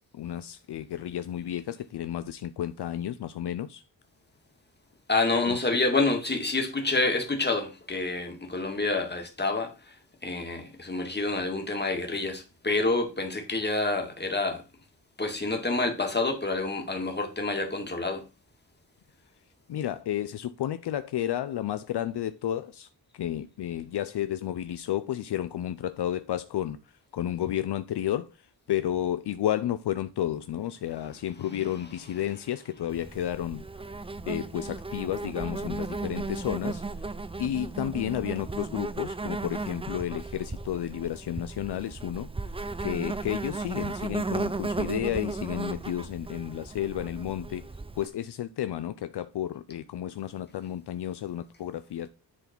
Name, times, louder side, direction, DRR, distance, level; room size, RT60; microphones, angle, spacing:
voice 1, 0.1-3.8 5.4-5.6 19.7-22.9 23.1-26.8 27.1-33.6 34.3-37.1 37.4-42.3 42.8-47.6 48.0-52.1, left 11 dB, 70° left, 0.6 m, -32 dB
voice 2, 5.1-9.9 10.2-14.6 15.2-18.2, left 3 dB, 25° left, 2.1 m, -28 dB
Insect, 32.9-48.1, right 3 dB, 15° right, 0.5 m, -35 dB
10.0 x 4.0 x 4.5 m
wide cardioid pair, 95°, 42 cm